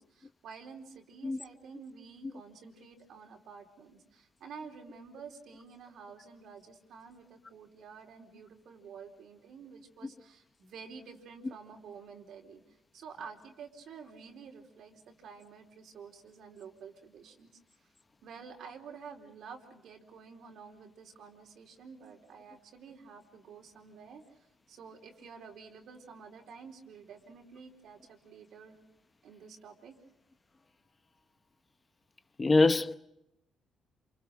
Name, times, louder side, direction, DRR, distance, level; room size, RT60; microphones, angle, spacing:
voice 1, 0.0-12.6 12.9-17.5 18.2-24.2 24.7-28.8 29.2-30.0, right 6 dB, 70° right, 4.1 m, -50 dB
voice 2, 32.4-33.0, left 3 dB, 25° left, 0.8 m, -23 dB
29.0 x 28.0 x 5.2 m
cardioid pair, 90°, 0 cm